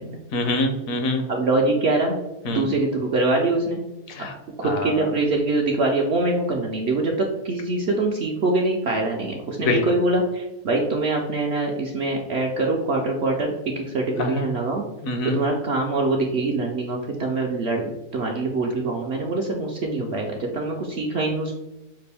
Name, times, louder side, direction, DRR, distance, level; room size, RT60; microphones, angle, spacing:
voice 1, 0.3-1.2 2.4-2.6 4.1-4.3 4.6-5.1 9.6-9.9 14.2-14.5 15.0-15.4, left 2 dB, 70° left, 5 dB, 1.1 m, -25 dB
voice 2, 1.3-2.1 2.5-3.8 4.6-14.8 15.2-21.5, right 2 dB, 65° right, 0 dB, 0.7 m, -24 dB
5.8 x 2.5 x 3.3 m, 0.99 s
omnidirectional pair, 1.6 m